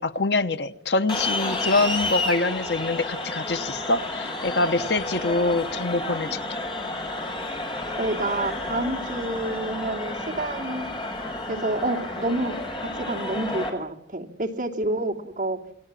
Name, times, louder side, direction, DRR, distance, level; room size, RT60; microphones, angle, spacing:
voice 1, 0.0-6.6, left 2 dB, 70° left, 1.2 m, -25 dB
sound 1, 1.1-13.7, left 2 dB, 25° left, 6.3 m, -31 dB
voice 2, 8.0-10.9 11.5-12.6 13.0-15.6, right 2 dB, 45° right, 2.9 m, -28 dB
28.0 x 22.0 x 7.6 m
head